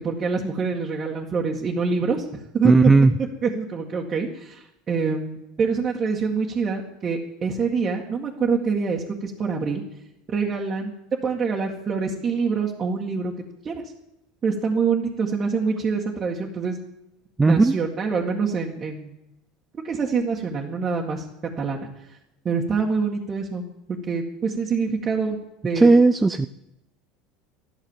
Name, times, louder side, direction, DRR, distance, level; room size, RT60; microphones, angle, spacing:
voice 1, 0.0-2.2 2.5-2.7 3.2-9.8 10.3-10.9 11.2-13.3 13.6-13.8 14.4-16.8 17.5-19.1 19.8-21.2 21.6-21.8 22.4-23.6 23.9-25.4 25.6-25.9, right 5 dB, 30° right, -3 dB, 2.0 m, -25 dB
voice 2, 2.6-3.1 17.4-17.8 25.8-26.5, right 3 dB, 15° right, 9 dB, 0.6 m, -15 dB
14.0 x 12.0 x 7.4 m, 0.85 s
supercardioid pair, 120°, 0 cm